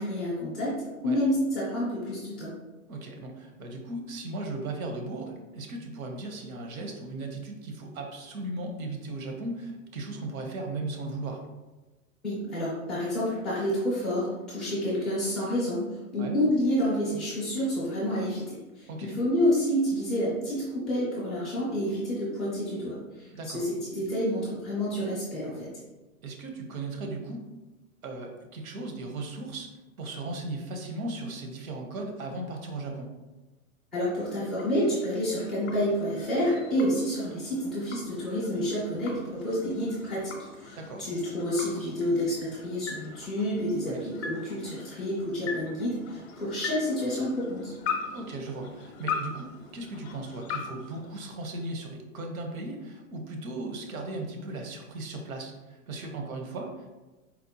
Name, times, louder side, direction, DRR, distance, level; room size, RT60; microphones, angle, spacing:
voice 1, 0.0-2.5 12.2-25.7 33.9-47.7, equal, ahead, -12 dB, 0.3 m, -29 dB
voice 2, 2.9-11.4 16.2-16.3 18.9-19.1 23.3-23.6 26.2-27.4 28.0-29.7 30.0-33.1 40.8-41.1 43.9-44.0 48.1-56.9, right 2 dB, 70° right, 3 dB, 0.8 m, -37 dB
sound 1, 34.0-51.8, left 5 dB, 45° left, 0.6 m, -41 dB
4.2 x 2.1 x 2.7 m, 1.1 s
hypercardioid pair, 135°, 43 cm